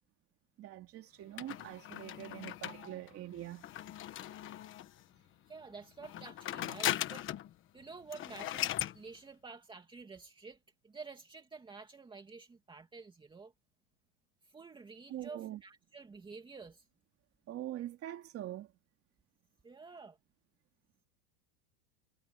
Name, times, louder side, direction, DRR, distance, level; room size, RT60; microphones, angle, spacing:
voice 1, 0.6-3.7 15.1-15.6 17.5-18.7, right 13 dB, 30° right, 2.8 m, -43 dB
sound 1, 1.4-5.0 6.0-7.5 7.8-7.9 8.1-9.0, left 12 dB, 25° left, 1.2 m, -38 dB
voice 2, 5.5-7.3 7.7-10.6 10.8-13.5 14.4-16.9 19.6-20.2, right 4 dB, 10° right, 2.6 m, -50 dB
supercardioid pair, 165°, 48 cm